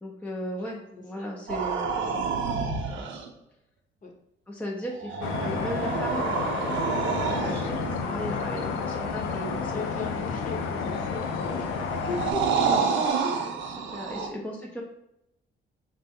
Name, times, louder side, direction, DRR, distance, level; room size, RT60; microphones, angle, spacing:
voice 1, 0.0-0.8 1.0-2.6 2.9-3.1 4.5-6.4 7.3-9.8 12.6-13.2 13.7-14.8, equal, 5° left, -1 dB, 0.5 m, -36 dB
voice 2, 0.6-1.3 1.9-2.4 4.0-4.1 7.3-8.3 8.7-9.4 9.7-12.5 14.1-14.4, left 3 dB, 40° left, 1 dB, 0.9 m, -39 dB
sound 1, 1.5-3.3 4.9-8.0 10.9-14.3, right 5 dB, 75° right, 0.6 m, -29 dB
sound 2, 5.2-12.3, left 5 dB, 85° left, 0.4 m, -31 dB
4.0 x 2.2 x 3.4 m, 0.82 s
cardioid pair, 90°, 20 cm